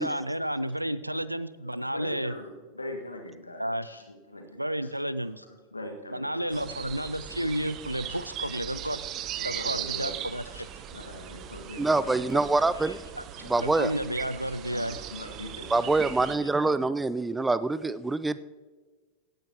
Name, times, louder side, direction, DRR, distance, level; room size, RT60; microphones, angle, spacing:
voice 1, 0.0-2.3 3.6-3.9 4.6-5.4 6.1-9.0 9.4-10.7 13.2-13.3 13.6-15.0, right 1 dB, 90° right, 16 dB, 0.4 m, -31 dB
voice 2, 1.8-4.9 5.2-6.5 8.1-8.2 9.4-10.2 10.5-10.6 10.9-12.4 12.7-13.0 13.4-13.9 14.3-16.6, left 1 dB, 80° left, 3 dB, 1.6 m, -43 dB
sound 1, 6.5-16.3, right 10 dB, 35° right, 0.8 m, -39 dB
voice 3, 11.8-13.0 13.4-13.9 15.7-18.4, right 3 dB, 10° right, 16 dB, 0.4 m, -25 dB
17.0 x 10.5 x 2.9 m, 1.4 s
figure-of-eight pair, 90°, 0 cm